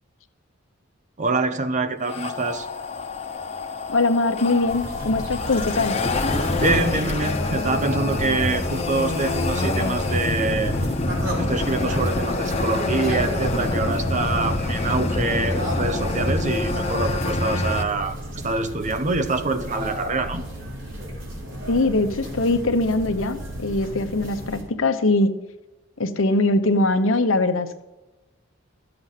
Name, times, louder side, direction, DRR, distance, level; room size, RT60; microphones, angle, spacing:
voice 1, 1.2-2.7 6.6-10.7 11.4-18.2 18.4-20.4, right 3 dB, 40° right, 0.8 m, -25 dB
sound 1, 2.0-17.8, left 2 dB, 35° left, 1.1 m, -26 dB
voice 2, 3.9-6.0 21.7-25.3 26.0-27.8, left 2 dB, 80° left, 1.0 m, -22 dB
sound 2, 4.7-24.6, right 1 dB, 70° right, 3.8 m, -34 dB
13.0 x 7.8 x 5.9 m
head